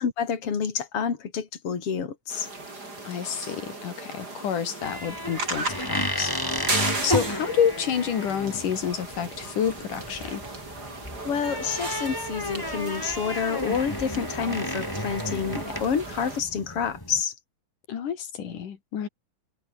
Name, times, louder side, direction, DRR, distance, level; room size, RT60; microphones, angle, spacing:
voice 1, 0.0-2.5 11.2-17.3, left 7 dB, 45° left, 4.0 m, -28 dB
sound 1, 2.3-16.4, right 2 dB, 30° right, 6.0 m, -36 dB
voice 2, 3.1-6.3 7.0-10.4 17.9-19.1, left 8 dB, 80° left, 3.9 m, -29 dB
sound 2, 4.8-17.2, left 1 dB, 5° left, 5.8 m, -33 dB
omnidirectional pair, 3.6 m